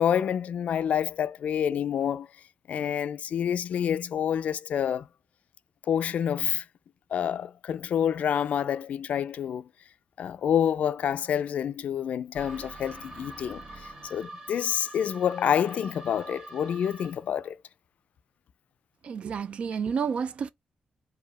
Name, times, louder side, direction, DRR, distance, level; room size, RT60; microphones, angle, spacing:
voice 1, 0.0-2.3 2.7-5.0 5.9-6.6 7.1-9.7 10.2-17.6, left 9 dB, 70° left, 0.4 m, -28 dB
sound 1, 12.4-17.3, right 2 dB, 35° right, 1.4 m, -45 dB
voice 2, 19.0-20.5, right 6 dB, 50° right, 0.4 m, -30 dB
4.9 x 2.7 x 4.0 m
wide cardioid pair, 180°, 3 cm